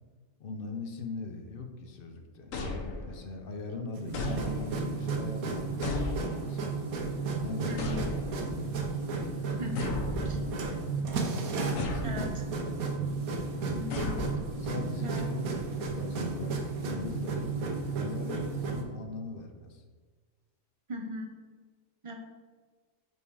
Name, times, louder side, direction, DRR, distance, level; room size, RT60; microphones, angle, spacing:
voice 1, 0.4-2.5 3.0-6.9 7.4-7.9 8.4-8.7 9.6-9.9 10.3-10.8 11.7-12.3 12.6-12.8 14.6-19.8, left 3 dB, 50° left, 5 dB, 0.7 m, -40 dB
sound 1, 2.5-3.4 4.1-5.0 5.8-6.7 7.8-8.6 9.8-10.8 11.8-12.5 13.9-14.8, left 3 dB, 70° left, 1.2 m, -36 dB
sound 2, 3.9-18.8, right 4 dB, 85° right, 1.3 m, -33 dB
voice 2, 7.7-8.0 9.6-9.9 10.3-10.4 12.0-12.7 13.7-14.1 15.0-15.2 20.9-21.3 22.0-22.2, equal, 30° right, 3 dB, 0.6 m, -39 dB
5.6 x 4.5 x 4.7 m, 1.4 s
omnidirectional pair, 1.5 m